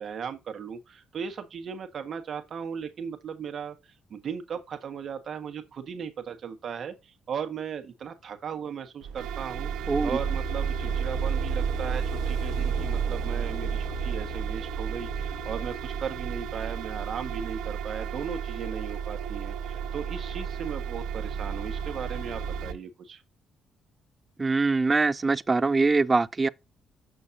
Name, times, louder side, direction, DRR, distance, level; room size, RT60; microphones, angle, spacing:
voice 1, 0.0-23.2, right 7 dB, 55° right, 1.4 m, -37 dB
sound 1, 9.0-22.7, right 6 dB, 85° right, 1.1 m, -31 dB
voice 2, 9.9-10.2 24.4-26.5, right 3 dB, 25° right, 0.4 m, -23 dB
7.0 x 6.2 x 2.6 m
cardioid pair, 90°, 0 cm